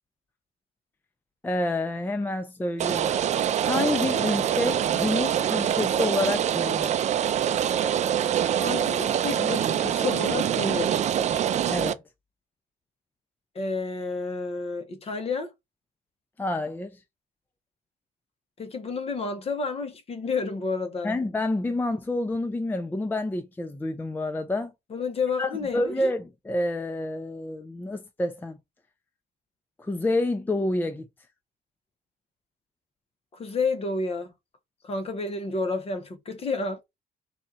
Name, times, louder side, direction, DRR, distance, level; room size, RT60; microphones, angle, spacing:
voice 1, 1.4-3.2 3.6-7.0 11.7-12.0 16.4-17.0 21.0-24.7 25.4-28.6 29.8-31.1, left 2 dB, 10° left, 0.6 m, -28 dB
Rain, 2.8-11.9, right 9 dB, 45° right, 0.4 m, -25 dB
voice 2, 8.6-11.0 13.5-15.5 18.6-21.1 24.9-26.0 33.3-34.3 34.8-36.8, left 4 dB, 35° left, 1.0 m, -30 dB
4.1 x 2.4 x 4.1 m
cardioid pair, 110°, 17 cm